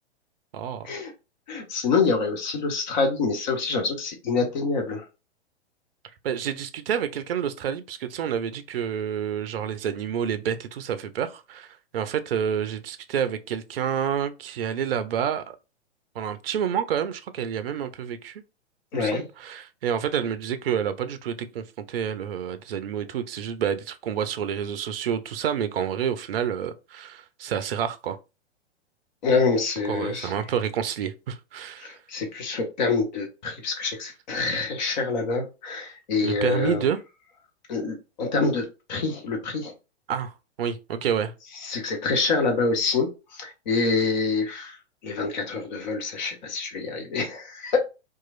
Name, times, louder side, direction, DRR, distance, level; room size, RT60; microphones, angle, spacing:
voice 1, 0.5-0.9 6.2-15.6 16.2-18.4 19.0-28.2 29.8-32.0 36.2-37.0 40.1-41.3, right 8 dB, 60° right, 0.4 m, -29 dB
voice 2, 1.5-5.0 18.9-19.2 29.2-30.3 31.8-36.8 37.7-39.7 41.6-44.8 45.0-47.8, left 4 dB, 40° left, 0.8 m, -26 dB
2.9 x 2.4 x 2.3 m
figure-of-eight pair, 105°, 34 cm